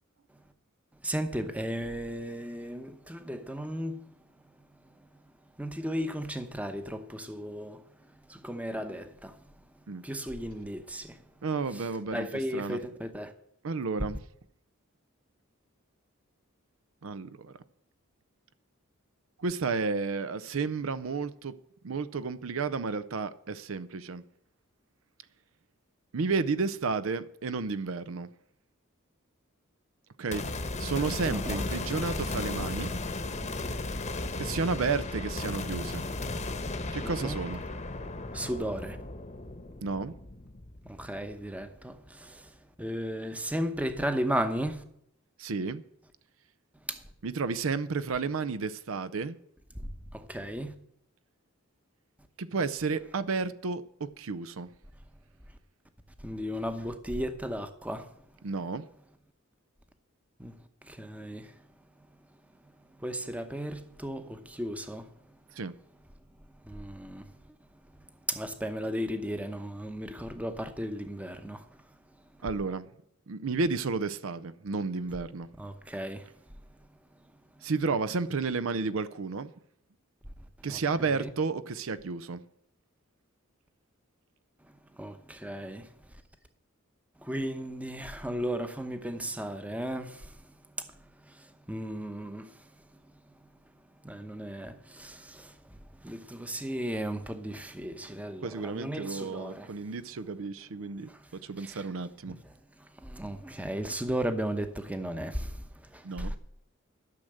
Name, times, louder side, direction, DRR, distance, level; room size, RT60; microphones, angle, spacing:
voice 1, 1.0-4.0 5.6-7.8 8.3-9.3 10.0-11.2 12.1-13.3 31.3-31.4 37.2-37.4 38.3-39.0 40.9-42.5 42.8-44.8 46.9-47.0 50.1-50.7 56.2-58.1 60.4-60.5 60.9-61.5 63.0-65.1 66.7-67.2 68.3-71.6 75.6-76.2 80.7-80.8 85.0-85.9 87.2-90.3 91.7-92.5 94.0-95.5 96.0-99.7 101.6-101.8 103.0-105.5 105.9-106.3, equal, 5° right, 0.8 m, -35 dB
voice 2, 11.4-12.9 13.6-14.2 17.0-17.6 19.4-21.5 21.8-24.2 26.1-28.3 30.2-32.9 34.4-36.0 36.9-37.6 39.8-40.1 45.4-45.8 47.2-49.4 52.4-54.7 58.4-58.8 65.5-65.7 72.4-72.9 73.3-75.5 77.6-79.5 80.6-82.4 98.4-102.4 106.0-106.4, right 4 dB, 65° right, 0.6 m, -32 dB
sound 1, 30.3-41.7, left 2 dB, 35° left, 1.0 m, -35 dB
12.0 x 6.5 x 7.7 m
head